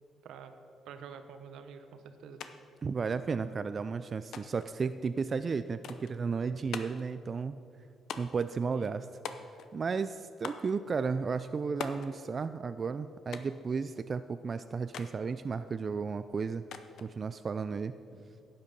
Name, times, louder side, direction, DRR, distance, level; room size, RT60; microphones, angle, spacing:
voice 1, 0.8-2.4 8.7-9.0 18.1-18.2, right 7 dB, 80° right, 8 dB, 0.9 m, -48 dB
sound 1, 2.4-2.5 2.8-3.5 4.3-4.7 5.8-6.2 6.7-7.1 8.1-8.5 9.2-9.8 10.4-10.7 11.8-12.1 13.3-13.6 14.9-15.2 16.7-17.1, left 7 dB, 70° left, 0.7 m, -42 dB
voice 2, 2.8-7.6 8.2-9.1 9.7-16.6 17.0-17.9, right 5 dB, 40° right, 11 dB, 0.3 m, -33 dB
11.5 x 8.8 x 5.4 m, 2.5 s
cardioid pair, 90°, 0 cm